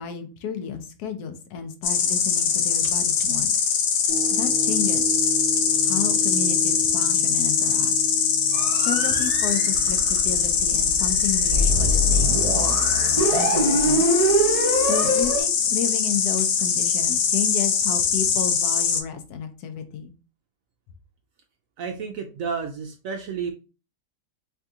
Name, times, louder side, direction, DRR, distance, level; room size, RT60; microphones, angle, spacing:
voice 1, 0.0-3.5 4.3-5.3 5.8-7.9 8.8-12.8 13.3-14.1 14.8-20.1, left 7 dB, 70° left, 7 dB, 1.1 m, -32 dB
Insect, 1.8-19.0, left 7 dB, 85° left, 1.4 m, -22 dB
sound 1, 4.1-12.5 13.0-13.1, right 3 dB, 45° left, 0.5 m, -35 dB
sound 2, 8.5-15.4, right 1 dB, 25° right, 0.8 m, -24 dB
voice 2, 21.8-23.5, right 6 dB, 70° right, 4 dB, 0.8 m, -31 dB
3.4 x 2.7 x 3.6 m, 0.33 s
omnidirectional pair, 1.9 m